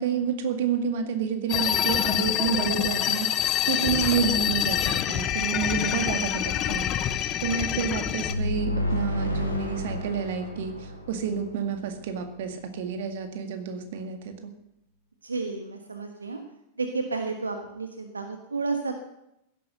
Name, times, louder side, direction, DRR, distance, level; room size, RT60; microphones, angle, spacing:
voice 1, 0.0-14.5, right 7 dB, 55° right, 7 dB, 2.0 m, -29 dB
sound 1, 1.5-8.3, left 11 dB, 35° left, 1.0 m, -26 dB
sound 2, 8.3-12.0, left 1 dB, 85° left, 2.6 m, -30 dB
voice 2, 15.2-16.4 16.8-19.0, right 3 dB, 75° right, 6 dB, 1.3 m, -31 dB
16.5 x 11.0 x 6.6 m, 0.83 s
figure-of-eight pair, 90°, 0 cm